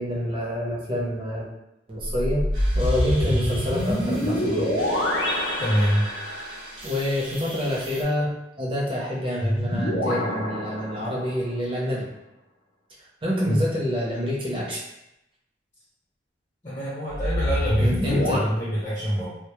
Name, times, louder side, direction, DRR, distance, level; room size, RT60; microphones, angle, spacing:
voice 1, 0.0-1.5 1.9-2.4 2.7-4.7 6.8-12.1 13.0-14.8 17.8-18.4, equal, 30° right, -5 dB, 0.6 m, -27 dB
sound 1, 2.0-6.6 9.4-11.5 17.1-18.4, left 1 dB, 75° left, 0.5 m, -26 dB
sound 2, 2.5-8.0, right 1 dB, 80° right, 0.7 m, -39 dB
voice 2, 5.6-6.1 13.5-13.6 16.6-19.3, equal, 35° left, -9 dB, 0.7 m, -25 dB
2.1 x 2.0 x 2.9 m, 0.87 s
head